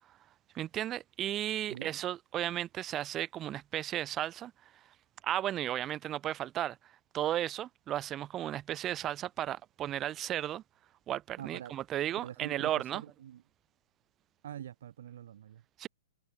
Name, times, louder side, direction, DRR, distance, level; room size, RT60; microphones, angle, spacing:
voice 1, 0.5-4.5 5.2-10.6 11.1-13.0 15.8-15.9, right 12 dB, 20° right, 0.5 m, -34 dB
voice 2, 11.4-11.7 12.2-13.4 14.4-15.6, right 10 dB, 65° right, 0.6 m, -44 dB
hypercardioid pair, 150°, 0 cm